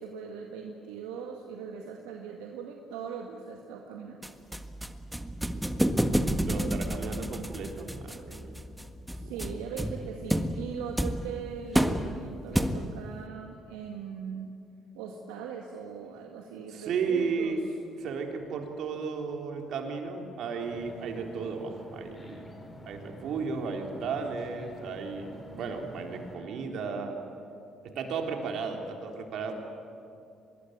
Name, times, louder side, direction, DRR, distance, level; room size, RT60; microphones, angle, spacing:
voice 1, 0.0-4.2 9.1-14.5 14.9-17.6, right 6 dB, 85° right, 1 dB, 1.8 m, -40 dB
sound 1, 4.2-13.1, equal, 5° right, 1.7 m, -30 dB
voice 2, 6.4-8.6 9.2-9.4 16.7-17.6 18.0-22.5 22.8-27.2 27.8-29.5, right 5 dB, 65° right, 2 dB, 3.9 m, -34 dB
sound 2, 20.6-26.4, left 1 dB, 30° left, 5.6 m, -48 dB
24.5 x 21.0 x 9.5 m, 2.6 s
supercardioid pair, 60°, 0 cm